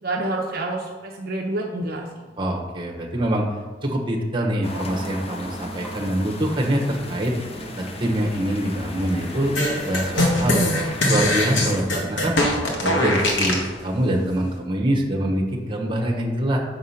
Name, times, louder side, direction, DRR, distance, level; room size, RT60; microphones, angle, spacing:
voice 1, 0.0-2.2, right 2 dB, 55° right, -1 dB, 0.8 m, -28 dB
voice 2, 2.4-3.5 3.8-7.3 7.8-9.5 9.8-10.7 11.1-12.4 12.8-16.6, right 1 dB, 30° right, 0 dB, 1.2 m, -24 dB
sound 1, 4.6-11.8, left 2 dB, 35° left, 0.7 m, -37 dB
sound 2, 4.8-12.8, right 1 dB, ahead, 1.8 m, -40 dB
sound 3, 9.5-13.7, left 1 dB, 85° left, 1.5 m, -21 dB
6.6 x 4.8 x 5.7 m, 1.4 s
head